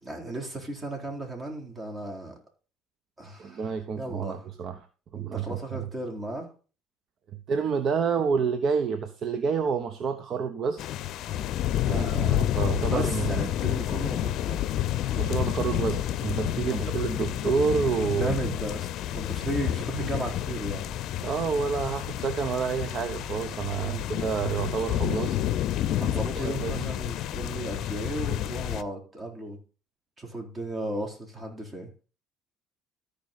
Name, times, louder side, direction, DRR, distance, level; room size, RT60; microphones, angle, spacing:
voice 1, 0.0-2.4 3.2-4.5 5.1-6.5 11.9-12.2 12.9-14.7 16.7-17.4 18.1-20.9 23.8-24.1 25.9-29.6 30.2-31.9, right 1 dB, 30° right, 1 dB, 4.2 m, -35 dB
voice 2, 3.4-4.9 5.1-5.6 7.5-10.9 11.9-13.4 15.1-18.3 21.2-25.4 26.4-26.9, right 6 dB, 50° right, 9 dB, 1.0 m, -28 dB
sound 1, 10.8-28.8, left 12 dB, 65° left, 0.6 m, -29 dB
14.0 x 5.2 x 4.2 m, 0.36 s
supercardioid pair, 80°, 0 cm